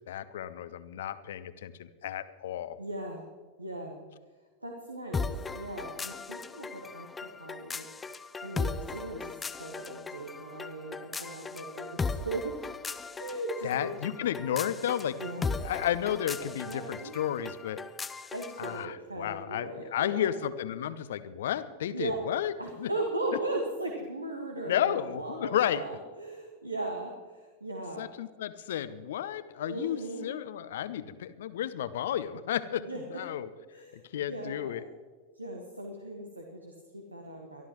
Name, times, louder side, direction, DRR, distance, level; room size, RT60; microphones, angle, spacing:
voice 1, 0.1-2.8 13.6-15.2 15.6-17.8 18.6-22.5 22.8-22.9 24.7-25.8 28.0-33.5 33.9-34.8, left 10 dB, 60° left, 14 dB, 0.8 m, -32 dB
voice 2, 2.8-3.2 3.6-4.0 4.6-7.9 8.4-12.7 13.2-13.9 15.2-15.5 16.4-17.2 18.3-20.3 21.9-22.2 22.6-28.1 29.7-30.3 32.8-33.0 33.7-34.0 34.3-34.8 35.3-37.7, right 2 dB, 85° right, 1 dB, 1.6 m, -38 dB
sound 1, 5.1-18.8, left 4 dB, 15° left, 0.6 m, -38 dB
23.5 x 13.0 x 3.1 m, 1.4 s
figure-of-eight pair, 90°, 0 cm